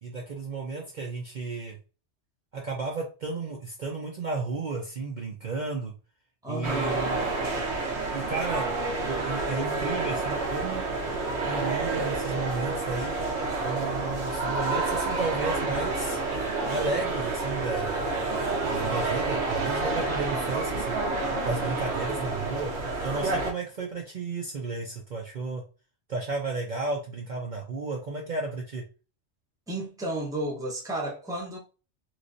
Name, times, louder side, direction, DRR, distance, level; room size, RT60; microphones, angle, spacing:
voice 1, 0.0-1.8 2.5-5.9 6.5-7.2 8.1-8.7 9.0-10.9 11.4-13.1 13.6-16.2 16.7-18.3 18.7-21.0 21.4-22.7 23.0-25.6 26.1-28.8, right 3 dB, 50° right, 0.7 m, -33 dB
voice 2, 6.4-7.0 20.1-20.6 29.7-31.6, right 1 dB, 5° right, 0.7 m, -33 dB
sound 1, 6.6-23.5, right 3 dB, 70° right, 1.1 m, -29 dB
3.2 x 3.0 x 2.6 m
omnidirectional pair, 1.2 m